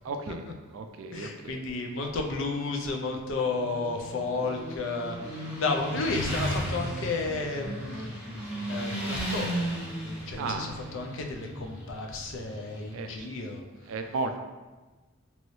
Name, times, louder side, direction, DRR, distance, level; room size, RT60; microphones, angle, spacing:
voice 1, 0.0-0.4 0.7-1.6 10.4-10.7 12.9-13.3 13.8-14.4, right 3 dB, 80° right, 6 dB, 0.3 m, -34 dB
voice 2, 1.1-8.3 8.7-9.7 10.0-13.6, left 3 dB, 65° left, 2 dB, 0.4 m, -32 dB
Motorcycle, 3.4-13.1, equal, 5° right, 0.6 m, -35 dB
3.0 x 2.7 x 3.1 m, 1.2 s
head